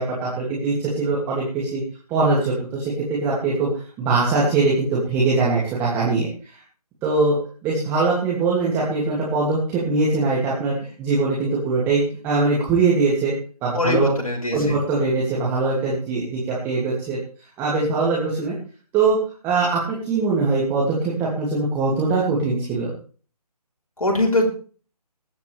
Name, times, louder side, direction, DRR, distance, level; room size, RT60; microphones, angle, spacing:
voice 1, 0.0-1.8 2.1-3.7 4.0-6.6 7.0-13.3 13.6-14.1 14.5-17.2 17.6-18.5 18.9-19.2 19.4-22.9, right 3 dB, 10° right, -5 dB, 2.7 m, -22 dB
voice 2, 13.7-14.8 24.0-24.5, left 2 dB, 60° left, 0 dB, 6.1 m, -21 dB
20.5 x 10.0 x 3.5 m, 0.40 s
figure-of-eight pair, 150°, 20 cm